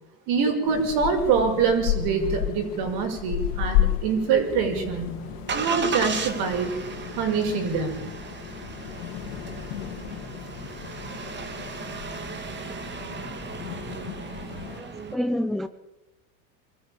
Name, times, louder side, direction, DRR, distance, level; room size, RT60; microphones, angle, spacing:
voice 1, 0.3-5.2 5.5-6.7 7.2-8.1, right 5 dB, 55° right, 5 dB, 6.2 m, -24 dB
sound 1, 0.7-14.8, left 13 dB, 75° left, 2.8 m, -33 dB
Engine starting, 4.4-15.2, right 5 dB, 25° right, 2.2 m, -35 dB
voice 2, 14.8-15.7, left 1 dB, ahead, 11 dB, 0.7 m, -28 dB
24.5 x 13.5 x 8.9 m, 0.96 s
supercardioid pair, 130°, 46 cm